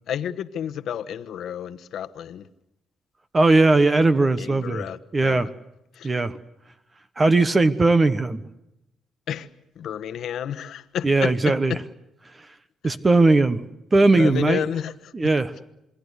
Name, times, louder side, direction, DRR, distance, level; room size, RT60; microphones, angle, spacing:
voice 1, 0.1-2.5 4.4-5.5 5.9-6.1 9.3-9.5 9.8-11.8 14.1-15.3, left 9 dB, 70° left, 11 dB, 1.2 m, -31 dB
voice 2, 3.3-4.8 5.1-5.5 6.0-6.4 7.2-8.4 11.0-11.7 12.8-13.6 13.9-14.6 15.1-15.5, right 2 dB, 25° right, 11 dB, 1.2 m, -18 dB
28.0 x 22.0 x 8.2 m, 0.87 s
cardioid pair, 90°, 0 cm